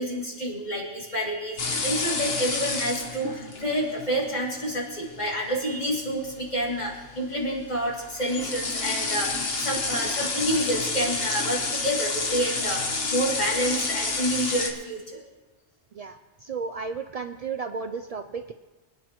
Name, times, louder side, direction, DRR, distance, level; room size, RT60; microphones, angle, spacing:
voice 1, 0.0-15.2, equal, 40° left, -3 dB, 2.9 m, -28 dB
sound 1, 1.6-14.7, left 3 dB, 60° left, 1.4 m, -30 dB
voice 2, 15.9-18.5, right 5 dB, 75° right, 8 dB, 0.3 m, -33 dB
23.5 x 10.0 x 3.0 m, 1.2 s
omnidirectional pair, 1.2 m